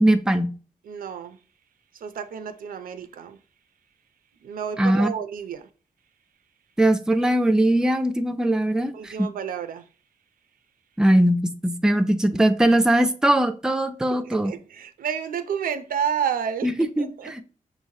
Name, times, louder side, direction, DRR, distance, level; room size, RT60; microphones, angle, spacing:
voice 1, 0.0-0.5 4.8-5.1 6.8-9.3 11.0-14.5 16.6-17.4, right 1 dB, 5° right, 0.4 m, -20 dB
voice 2, 0.8-1.4 2.0-3.4 4.4-5.6 8.9-9.8 14.4-16.7 17.0-17.3, right 8 dB, 85° right, 0.4 m, -30 dB
6.2 x 3.0 x 2.7 m
wide cardioid pair, 110°, 14 cm